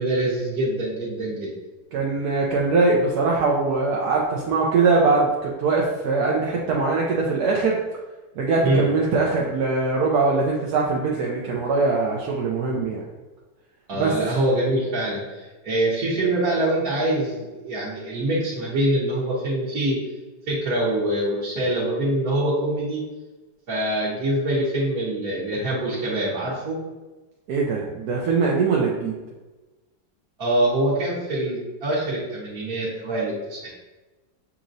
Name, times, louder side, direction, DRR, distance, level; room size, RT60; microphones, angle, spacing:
voice 1, 0.0-1.5 8.6-8.9 13.9-20.0 20.5-23.0 23.7-26.8 30.4-33.7, right 1 dB, 50° right, -9 dB, 1.4 m, -24 dB
voice 2, 1.9-7.8 8.4-13.0 13.9-14.1 27.5-29.1, right 3 dB, 70° right, -3 dB, 0.9 m, -22 dB
7.1 x 2.9 x 2.6 m, 1.2 s
omnidirectional pair, 2.2 m